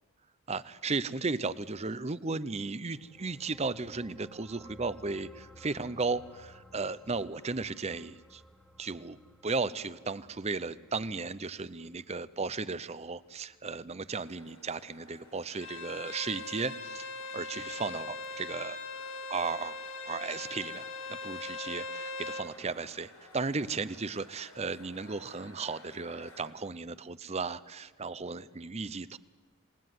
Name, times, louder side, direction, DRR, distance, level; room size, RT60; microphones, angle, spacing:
voice 1, 0.5-8.4 8.8-9.2 9.4-18.8 19.3-19.8 20.1-20.9 21.2-29.2, right 4 dB, 30° right, 16 dB, 0.7 m, -35 dB
sound 1, 2.9-13.5 13.8-14.0, equal, ahead, 1.2 m, -57 dB
sound 2, 14.2-26.5, left 1 dB, 80° left, 7.3 m, -56 dB
Bowed string instrument, 15.5-22.5, left 3 dB, 60° left, 2.3 m, -40 dB
27.5 x 19.0 x 9.5 m, 1.5 s
head